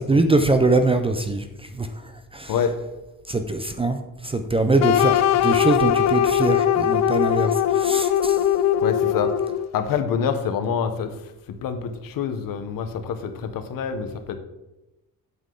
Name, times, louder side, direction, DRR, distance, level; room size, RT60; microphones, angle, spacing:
voice 1, 0.1-1.4 1.7-1.9 2.3-2.5 3.3-4.0 4.2-8.4, right 2 dB, 15° right, 7 dB, 0.4 m, -22 dB
sound 1, 4.8-9.7, left 10 dB, 50° left, 0.5 m, -20 dB
voice 2, 8.8-9.4 9.7-11.1 11.5-14.4, left 7 dB, 65° left, 9 dB, 1.0 m, -26 dB
8.1 x 7.7 x 3.8 m, 0.97 s
cardioid pair, 155°, 37 cm